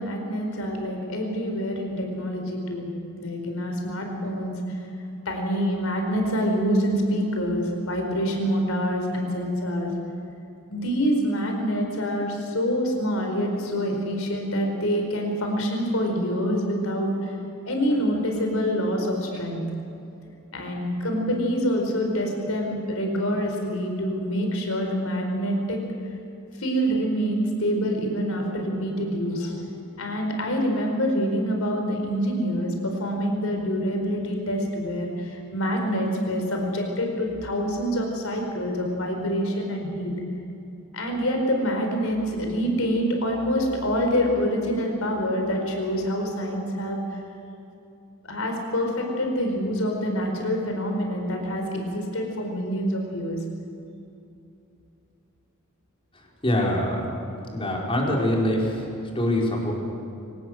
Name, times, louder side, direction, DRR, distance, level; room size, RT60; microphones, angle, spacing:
voice 1, 0.0-2.9 3.2-4.8 5.2-9.9 10.7-17.4 17.6-19.6 20.5-25.8 26.6-29.6 30.0-40.1 40.9-47.2 48.2-53.4, equal, 70° left, 2 dB, 4.9 m, -26 dB
voice 2, 56.4-57.0 57.5-58.7 59.1-59.7, left 1 dB, 25° left, -2 dB, 4.5 m, -23 dB
25.0 x 18.0 x 7.9 m, 2.8 s
head